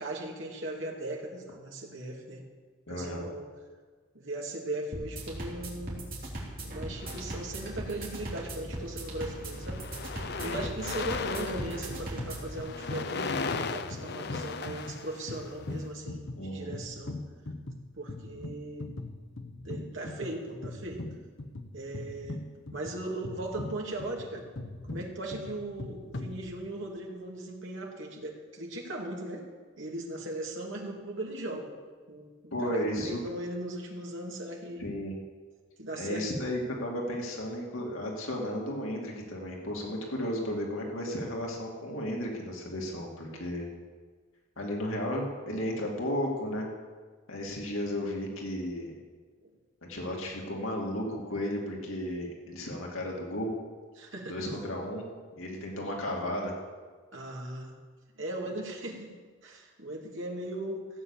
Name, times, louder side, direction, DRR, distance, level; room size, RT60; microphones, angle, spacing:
voice 1, 0.0-2.4 2.9-3.5 4.1-6.1 6.6-9.9 10.4-17.2 18.0-18.9 19.6-21.1 21.7-22.4 22.7-24.5 24.9-29.5 29.8-31.7 32.1-34.9 35.8-36.3 49.4-49.5 54.0-54.4 57.1-57.7 58.1-59.1 59.4-60.9, right 1 dB, 70° right, -1 dB, 2.5 m, -38 dB
voice 2, 2.9-3.3 10.4-10.6 16.3-16.7 32.5-33.2 34.8-35.1 35.9-43.7 44.6-46.7 47.3-48.9 49.9-53.5 54.3-55.0 55.4-56.6, equal, 90° left, -1 dB, 2.5 m, -34 dB
sound 1, 4.9-12.5, right 1 dB, 45° right, 3.2 m, -39 dB
sound 2, 7.0-8.0 8.7-9.0 9.2-15.7, left 4 dB, 55° left, 0.6 m, -37 dB
sound 3, 11.6-27.0, left 2 dB, 70° left, 1.0 m, -42 dB
16.0 x 8.2 x 7.3 m, 1.5 s
head